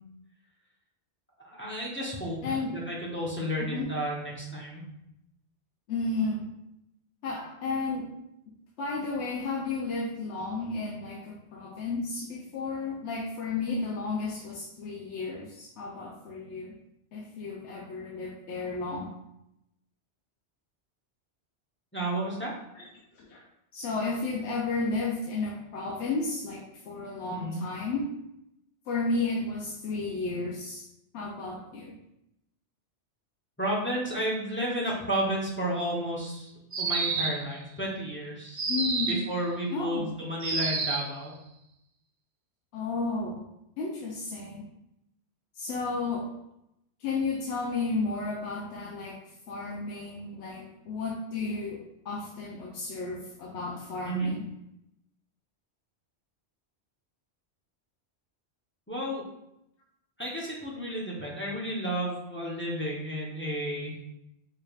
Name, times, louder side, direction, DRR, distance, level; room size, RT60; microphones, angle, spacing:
voice 1, 1.4-2.4 2.7-4.8 21.9-22.5 27.3-27.6 33.6-36.5 36.8-38.7 39.1-41.3 54.0-54.3 58.9-59.2 60.2-63.9, right 1 dB, 10° left, -5 dB, 0.7 m, -32 dB
voice 2, 2.4-2.8 3.6-3.9 5.9-6.5 7.2-8.1 8.8-16.7 17.1-19.1 22.7-22.8 23.1-23.4 23.7-28.1 28.9-30.9 31.1-32.0 38.7-39.2 39.7-40.1 42.7-43.5 43.8-44.7 45.5-46.3 47.0-49.2 49.5-54.4, left 3 dB, 90° left, -3 dB, 0.9 m, -33 dB
sound 1, 36.7-37.5 38.6-39.3 40.4-41.1, right 4 dB, 55° right, 0.7 m, -29 dB
4.6 x 3.5 x 2.4 m, 0.83 s
omnidirectional pair, 1.1 m